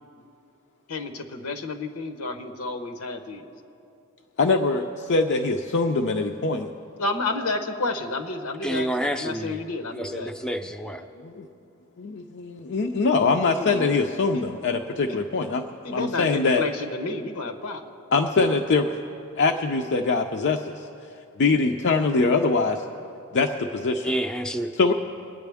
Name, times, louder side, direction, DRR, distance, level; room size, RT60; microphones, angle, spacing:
voice 1, 0.9-3.5 7.0-10.3 13.3-13.9 14.3-14.4 15.1-15.2 15.8-17.9 24.8-24.9, left 3 dB, 85° left, 6 dB, 1.0 m, -31 dB
voice 2, 4.4-6.7 11.2-11.5 12.0-16.7 18.1-18.9 19.4-20.7 21.4-22.8 23.3-24.1 24.7-24.9, left 3 dB, 55° left, 3 dB, 0.5 m, -23 dB
voice 3, 8.6-9.6 9.9-11.0 24.0-24.7, right 1 dB, 5° left, 5 dB, 0.5 m, -28 dB
24.0 x 9.1 x 3.5 m, 2.7 s
head